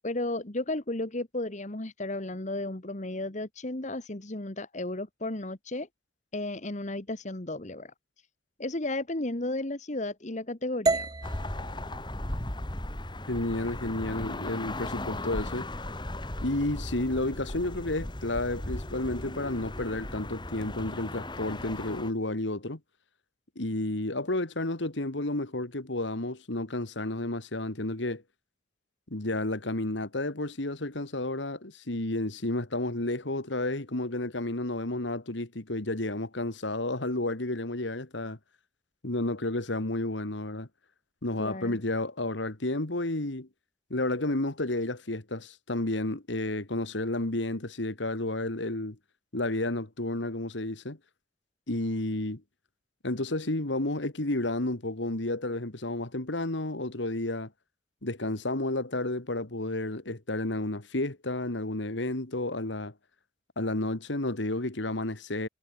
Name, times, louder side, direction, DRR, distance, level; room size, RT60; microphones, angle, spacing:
voice 1, 0.0-5.9 6.3-7.9 8.6-11.1 41.4-41.8, left 2 dB, 40° left, 1.6 m, -34 dB
sound 1, 10.9-15.0, right 3 dB, 20° right, 0.6 m, -34 dB
sound 2, 11.2-22.1, left 1 dB, 25° left, 1.9 m, -37 dB
voice 2, 13.3-15.7 16.4-22.8 23.6-28.2 29.1-38.4 39.0-40.7 41.2-43.5 43.9-49.0 49.3-51.0 51.7-52.4 53.0-57.5 58.0-62.9 63.6-65.5, left 2 dB, 75° left, 2.2 m, -31 dB
head